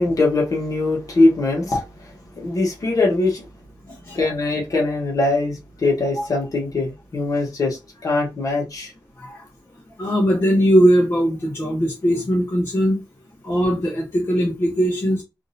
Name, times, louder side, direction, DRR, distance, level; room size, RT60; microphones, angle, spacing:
voice 1, 0.0-3.4 4.1-8.9, left 2 dB, 45° left, 1.2 m, -21 dB
voice 2, 10.0-13.0 13.4-15.2, equal, 30° left, 0.9 m, -19 dB
3.6 x 2.6 x 2.7 m
wide cardioid pair, 175°, 8 cm